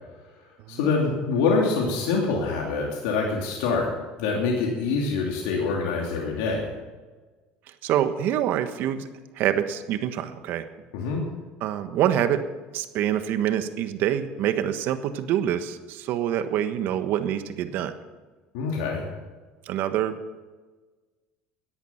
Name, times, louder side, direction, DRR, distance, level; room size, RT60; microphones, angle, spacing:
voice 1, 0.7-3.9 4.2-6.7 10.9-11.2 18.5-19.0, left 4 dB, 85° left, -2 dB, 2.8 m, -25 dB
voice 2, 7.8-9.0 9.3-10.7 11.6-12.4 12.7-17.9 19.6-20.1, right 10 dB, 65° right, 10 dB, 1.3 m, -26 dB
17.0 x 11.0 x 5.8 m, 1.3 s
supercardioid pair, 100°, 4 cm